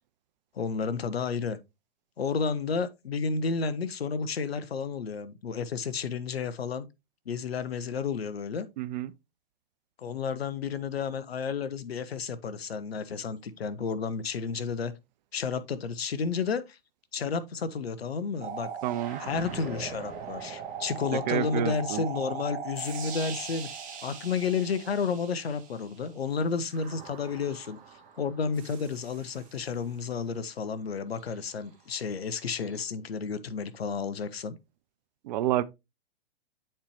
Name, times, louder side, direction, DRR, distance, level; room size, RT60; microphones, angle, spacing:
voice 1, 0.5-1.6 2.2-6.9 7.3-8.7 10.0-15.0 15.3-16.8 17.1-18.7 19.2-23.7 24.0-27.8 28.2-34.6, left 5 dB, 80° left, 0.9 m, -31 dB
voice 2, 8.8-9.1 18.8-19.2 21.3-22.0 35.2-35.6, right 13 dB, 45° right, 0.5 m, -29 dB
sound 1, 18.4-26.0 26.7-29.7 32.4-32.8, right 7 dB, 25° right, 1.5 m, -40 dB
8.4 x 4.4 x 3.0 m
hypercardioid pair, 120°, 30 cm